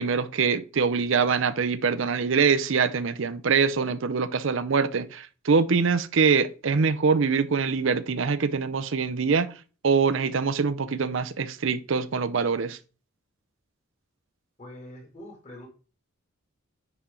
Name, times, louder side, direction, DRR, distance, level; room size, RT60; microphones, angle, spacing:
voice 1, 0.0-9.5 9.8-12.8, right 5 dB, 65° right, 0.5 m, -24 dB
voice 2, 14.6-15.7, left 1 dB, 35° left, 2.7 m, -44 dB
10.0 x 4.4 x 3.8 m
head